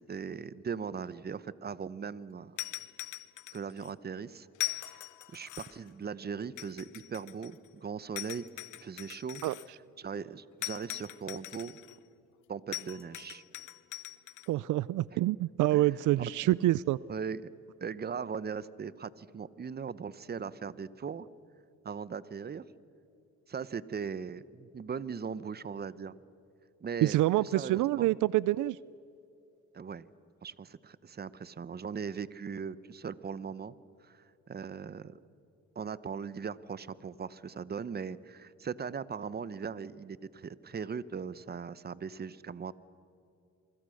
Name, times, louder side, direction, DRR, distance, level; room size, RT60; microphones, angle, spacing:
voice 1, 0.0-2.6 3.5-4.5 4.9-5.1 5.3-8.4 8.8-9.4 10.0-11.8 12.5-13.4 15.1-15.2 15.7-16.2 17.1-17.5 17.8-21.3 21.8-22.6 23.5-26.1 26.8-28.1 29.7-30.1 30.4-33.7 34.0-35.2 35.7-42.7, right 6 dB, 30° right, 17 dB, 0.9 m, -39 dB
sound 1, 2.6-3.9 4.5-5.9 6.6-7.7 8.2-9.7 10.6-12.0 12.7-14.5, left 17 dB, 85° left, 0.8 m, -41 dB
voice 2, 14.5-17.0 27.0-28.8, right 16 dB, 80° right, 21 dB, 0.5 m, -27 dB
28.0 x 24.0 x 6.5 m, 2.7 s
cardioid pair, 90°, 30 cm